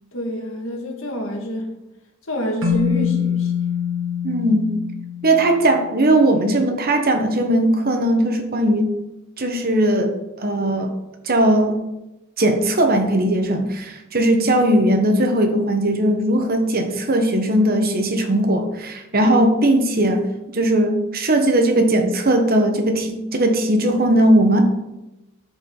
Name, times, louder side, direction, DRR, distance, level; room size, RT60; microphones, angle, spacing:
voice 1, 0.1-1.7 2.3-3.5, equal, 75° left, 2 dB, 1.8 m, -27 dB
Keyboard (musical), 2.6-5.9, left 7 dB, 75° right, 1.7 m, -24 dB
voice 2, 4.2-4.7 5.2-8.9 9.4-10.9 11.2-11.8 12.4-20.2 20.5-24.6, right 1 dB, 45° right, 5 dB, 1.2 m, -18 dB
13.0 x 4.9 x 3.9 m, 0.97 s
head